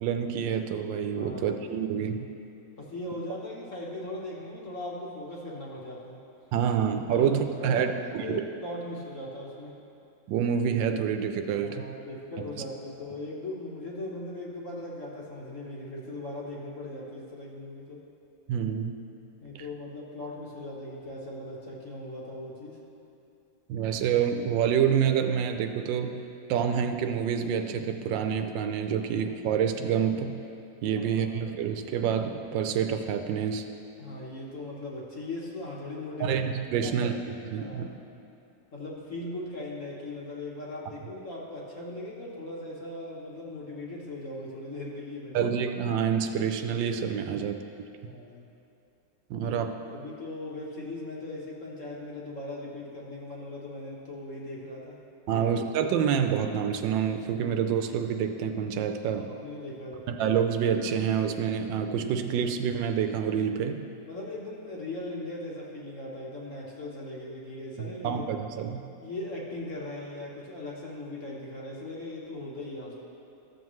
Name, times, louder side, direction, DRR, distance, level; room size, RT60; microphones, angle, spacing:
voice 1, 0.0-2.2 6.5-8.4 10.3-11.9 18.5-19.0 19.5-19.6 23.7-26.2 26.5-30.4 30.8-33.6 36.2-37.1 37.5-37.9 45.3-47.9 49.3-49.7 55.3-59.3 60.1-63.9 67.8-68.8, right 8 dB, 80° right, 7 dB, 1.2 m, -27 dB
voice 2, 1.1-1.6 2.8-6.2 7.1-9.7 11.6-18.0 19.4-22.8 30.9-31.3 34.0-36.4 36.8-37.1 37.6-37.9 38.7-45.5 47.3-47.4 48.0-48.4 49.4-49.6 49.9-55.0 55.3-55.5 59.2-60.1 64.1-68.2 69.0-73.0, left 2 dB, 45° left, -4 dB, 1.4 m, -39 dB
14.0 x 7.2 x 3.1 m, 2.7 s
omnidirectional pair, 2.0 m